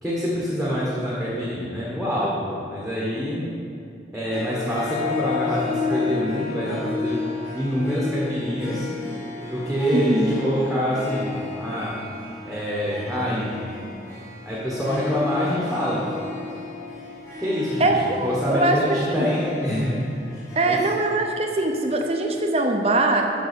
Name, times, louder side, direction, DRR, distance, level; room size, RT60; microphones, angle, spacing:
voice 1, 0.0-3.4 4.1-7.2 7.5-8.9 9.5-12.0 12.4-13.8 14.4-16.1 17.4-20.8, equal, ahead, -7 dB, 1.3 m, -26 dB
Harp, 4.3-21.9, left 4 dB, 20° left, 1.8 m, -32 dB
voice 2, 9.9-10.4 17.8-19.3 20.6-23.3, right 2 dB, 35° right, 3 dB, 0.7 m, -22 dB
7.0 x 6.1 x 6.7 m, 2.5 s
head